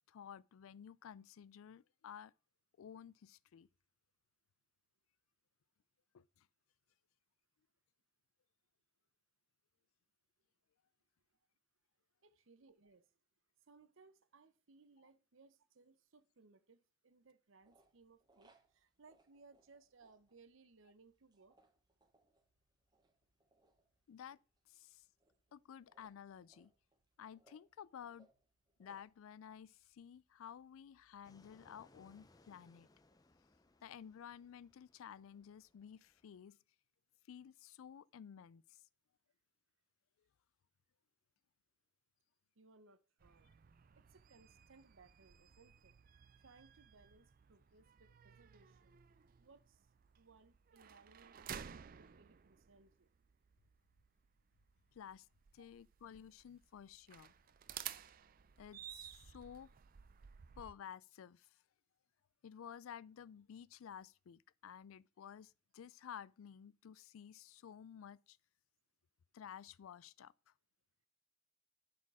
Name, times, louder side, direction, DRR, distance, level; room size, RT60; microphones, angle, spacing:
voice 1, 0.1-2.3 2.8-3.7 6.1-6.5 24.1-24.4 24.7-25.0 25.5-26.7 27.2-28.3 28.8-32.9 33.8-36.6 37.3-38.8 54.9-55.3 55.5-57.3 58.6-59.7 60.6-61.6 62.4-68.4 69.3-70.5, left 8 dB, 75° left, 0.3 m, -53 dB
voice 2, 12.2-13.1 13.6-21.6 42.6-43.5 43.9-45.9 46.4-49.0 49.4-49.9 50.2-53.1 55.6-55.7, right 4 dB, 70° right, 0.8 m, -65 dB
sound 1, 17.6-31.8, right 2 dB, 20° right, 0.9 m, -75 dB
Fixed-wing aircraft airplane, 31.2-36.4, left 2 dB, 20° left, 0.4 m, -69 dB
sound 2, 43.2-60.7, right 9 dB, 40° right, 0.4 m, -55 dB
11.0 x 4.4 x 4.8 m
head